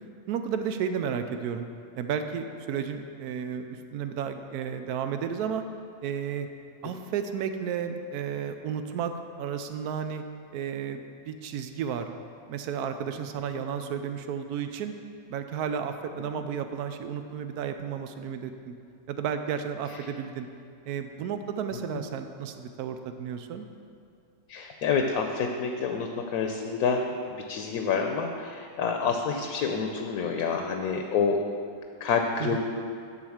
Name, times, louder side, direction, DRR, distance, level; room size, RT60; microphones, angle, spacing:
voice 1, 0.3-1.6 2.0-5.6 6.0-6.5 6.8-9.1 9.4-10.2 10.5-12.1 12.5-14.9 15.3-18.7 19.1-20.5 20.8-23.7 32.4-32.6, right 7 dB, 85° right, 8 dB, 1.1 m, -32 dB
voice 2, 24.5-31.4 32.0-32.6, left 5 dB, 75° left, 4 dB, 1.1 m, -28 dB
10.5 x 4.1 x 7.1 m, 2.3 s
omnidirectional pair, 1.6 m